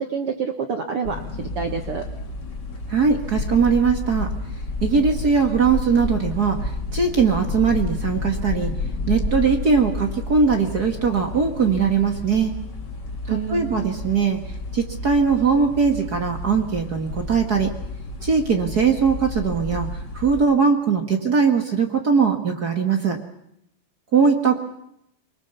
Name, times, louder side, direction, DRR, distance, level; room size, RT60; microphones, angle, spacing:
voice 1, 0.0-2.0 13.3-13.9, right 6 dB, 60° right, 5 dB, 1.6 m, -28 dB
sound 1, 1.0-20.4, left 3 dB, 30° left, 2.5 m, -31 dB
voice 2, 2.9-4.3 4.8-8.7 9.1-12.5 13.3-14.4 14.7-17.7 18.2-19.9 20.1-23.2 24.1-24.6, right 5 dB, 40° right, 4 dB, 1.5 m, -20 dB
24.0 x 22.5 x 7.0 m, 0.78 s
omnidirectional pair, 4.3 m